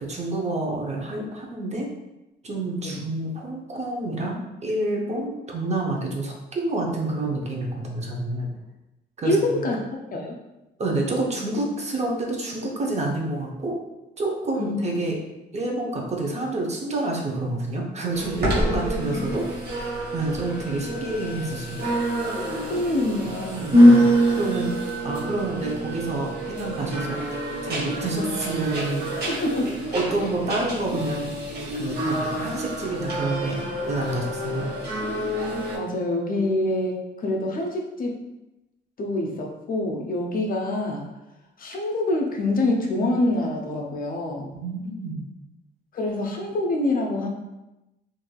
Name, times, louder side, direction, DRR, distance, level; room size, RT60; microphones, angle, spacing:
voice 1, 0.0-1.9 2.4-8.5 9.2-9.7 10.8-13.8 14.2-15.2 15.5-19.4 20.1-21.8 23.6-24.7 25.0-29.4 29.9-31.3 31.7-34.7 44.5-45.2, right 2 dB, 35° right, -1 dB, 0.6 m, -28 dB
voice 2, 9.2-10.3 14.6-14.8 19.1-19.3 22.7-23.7 29.3-29.8 35.7-38.2 39.0-41.1 41.6-44.5 45.9-47.3, left 1 dB, 45° left, 1 dB, 0.5 m, -26 dB
sound 1, 18.1-35.8, equal, 55° right, 1.2 m, -25 dB
3.1 x 2.5 x 2.3 m, 0.96 s
cardioid pair, 90°, 20 cm